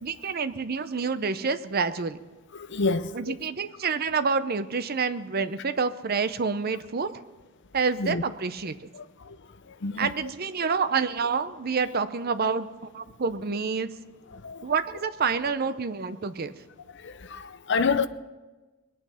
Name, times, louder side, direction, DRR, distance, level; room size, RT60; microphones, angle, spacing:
voice 1, 0.0-2.2 3.1-7.1 7.7-8.9 10.0-12.7 12.9-13.9 14.6-16.5, right 5 dB, 45° right, 0.6 m, -28 dB
voice 2, 2.5-3.4 8.0-8.2 9.0-9.3 9.8-10.1 14.4-14.6 17.0-18.1, left 4 dB, 55° left, 0.6 m, -28 dB
21.5 x 9.0 x 5.6 m
head